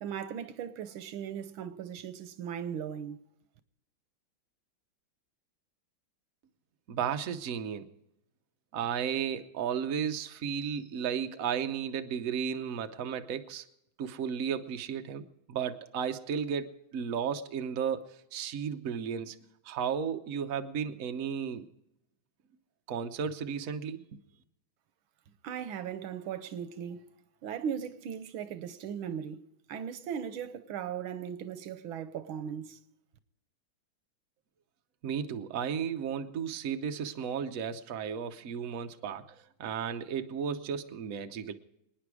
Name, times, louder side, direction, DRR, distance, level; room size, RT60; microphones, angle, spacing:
voice 1, 0.0-3.2 25.4-27.0 27.4-32.8, right 8 dB, 85° right, 1.7 m, -38 dB
voice 2, 6.9-7.9 8.7-13.6 14.0-19.4 19.6-21.7 22.9-24.2 35.0-39.3 39.6-41.5, right 7 dB, 55° right, 1.1 m, -34 dB
26.0 x 9.6 x 4.8 m
omnidirectional pair, 2.2 m